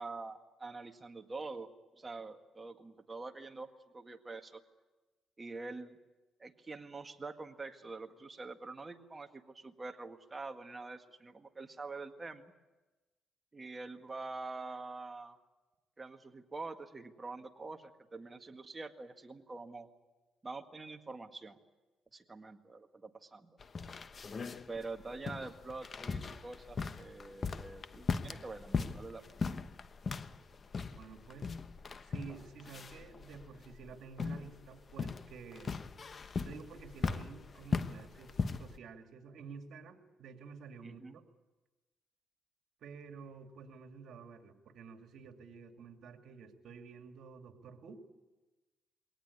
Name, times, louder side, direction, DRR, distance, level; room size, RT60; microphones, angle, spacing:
voice 1, 0.0-4.6 5.4-6.0 6.4-12.5 13.5-15.4 16.0-19.9 20.4-21.6 22.1-23.6 24.7-29.2 40.8-41.2, right 3 dB, 25° right, 6 dB, 1.8 m, -45 dB
sound 1, 23.6-38.8, left 4 dB, 40° left, 1.0 m, -39 dB
voice 2, 30.9-31.6 32.0-35.7 36.4-41.2 42.8-48.0, right 5 dB, 70° right, 5 dB, 2.5 m, -51 dB
22.5 x 18.0 x 9.7 m, 1.2 s
cardioid pair, 90°, 0 cm